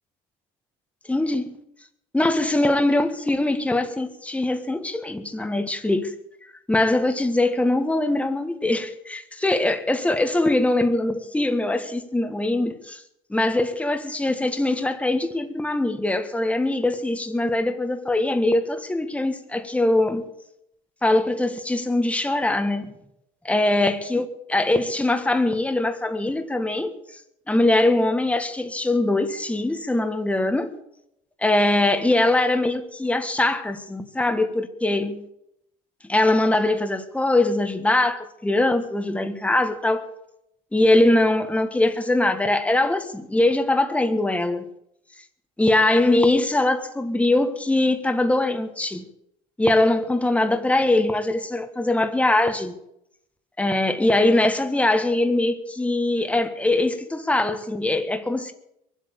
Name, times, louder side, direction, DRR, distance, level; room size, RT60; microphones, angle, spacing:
voice 1, 1.1-1.6 2.1-6.1 6.7-13.0 13.3-20.2 21.0-23.0 23.5-26.9 27.5-30.7 31.4-35.2 36.1-40.1 40.7-44.7 45.6-49.0 49.6-52.7 53.6-58.5, left 2 dB, 5° left, 1.6 m, -22 dB
22.5 x 8.0 x 7.0 m
supercardioid pair, 95°, 18 cm